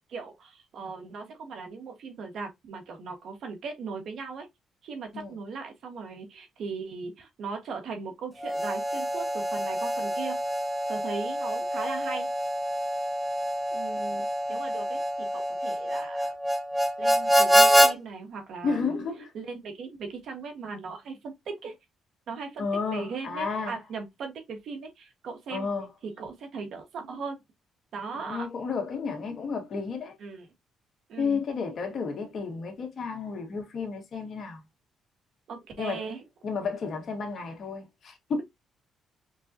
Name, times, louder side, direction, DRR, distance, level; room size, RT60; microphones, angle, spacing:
voice 1, 0.1-4.5 4.8-10.4 10.9-12.3 13.7-16.3 17.0-19.0 19.3-21.7 22.3-22.6 22.9-25.7 26.0-27.4 27.9-28.5 30.2-30.5 31.1-31.4 35.5-36.2, right 5 dB, 70° right, 1.3 m, -38 dB
Harmonica, 8.4-17.9, equal, 5° right, 1.0 m, -26 dB
voice 2, 18.6-19.3 22.6-23.8 25.5-25.9 28.2-30.1 31.2-34.6 35.8-36.1 36.4-38.4, left 5 dB, 55° left, 1.5 m, -32 dB
5.3 x 2.3 x 2.7 m
cardioid pair, 90°, 0 cm